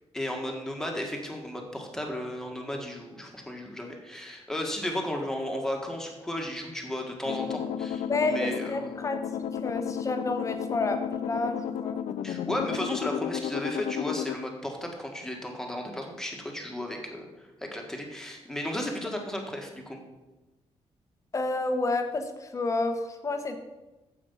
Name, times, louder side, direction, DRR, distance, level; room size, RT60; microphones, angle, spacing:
voice 1, 0.1-9.0 12.2-17.3 17.6-20.0, left 1 dB, 5° left, 1 dB, 1.6 m, -34 dB
sound 1, 7.3-14.4, left 9 dB, 75° left, 0.5 m, -33 dB
voice 2, 8.1-12.0 21.3-23.6, left 2 dB, 30° left, 6 dB, 1.0 m, -30 dB
9.6 x 7.9 x 5.6 m, 1.1 s
wide cardioid pair, 155°, 11 cm